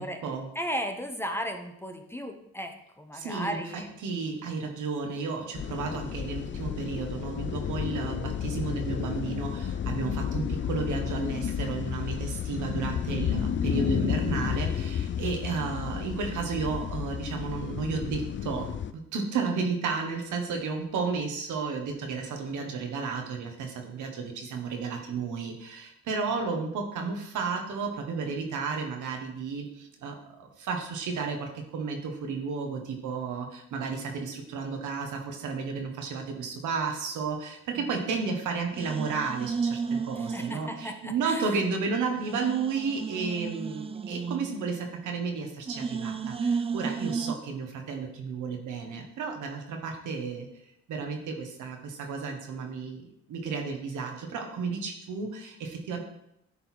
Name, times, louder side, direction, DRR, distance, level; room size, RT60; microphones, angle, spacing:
voice 1, 0.0-0.5 3.1-18.7 18.9-50.5 50.9-56.0, right 5 dB, 80° right, 3 dB, 1.5 m, -33 dB
voice 2, 0.5-3.9 40.2-41.5, equal, 10° left, 4 dB, 0.9 m, -35 dB
sound 1, 5.6-18.9, left 8 dB, 40° left, 0.5 m, -32 dB
sound 2, 37.7-38.4 38.7-41.3 41.6-41.7 42.2-45.3 45.7-47.3, right 5 dB, 20° right, 0.4 m, -34 dB
9.8 x 4.0 x 4.5 m, 0.76 s
cardioid pair, 90°, 30 cm